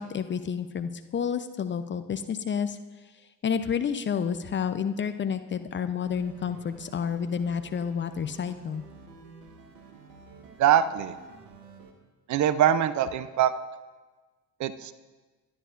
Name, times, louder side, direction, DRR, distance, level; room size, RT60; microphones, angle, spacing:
voice 1, 0.0-2.8 3.4-8.8, left 7 dB, 25° left, 10 dB, 0.6 m, -30 dB
sound 1, 6.0-11.9, right 3 dB, 75° right, 1.6 m, -50 dB
voice 2, 10.6-11.1 12.3-13.5 14.6-14.9, right 10 dB, 40° right, 15 dB, 0.6 m, -23 dB
22.0 x 11.0 x 2.5 m, 1.3 s
figure-of-eight pair, 60°, 48 cm